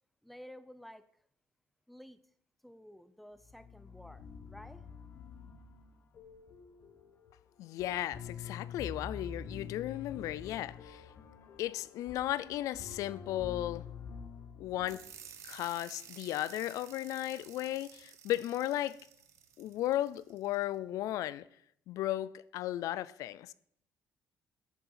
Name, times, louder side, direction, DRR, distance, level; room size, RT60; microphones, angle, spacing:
voice 1, 0.2-1.1 1.9-2.2 2.6-4.8, equal, ahead, 0.7 m, -52 dB
sound 1, 3.4-15.5, left 6 dB, 50° left, 1.6 m, -47 dB
voice 2, 7.6-11.1 11.6-13.8 14.6-15.1 15.4-19.0 19.6-21.4 21.9-23.5, left 14 dB, 80° left, 0.4 m, -35 dB
sound 2, 14.8-20.6, right 8 dB, 65° right, 1.5 m, -53 dB
13.5 x 6.8 x 5.6 m
cardioid pair, 135°, 6 cm